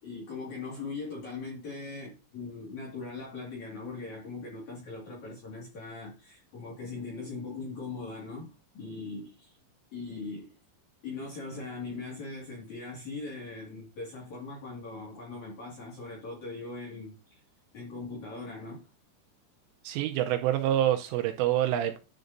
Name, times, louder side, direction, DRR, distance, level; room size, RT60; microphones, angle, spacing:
voice 1, 0.0-9.6 9.9-10.5 11.0-17.4 17.7-18.9, left 3 dB, 50° left, 2.5 m, -40 dB
voice 2, 19.8-22.0, right 12 dB, 80° right, 3.0 m, -26 dB
10.5 x 6.6 x 2.6 m
omnidirectional pair, 5.9 m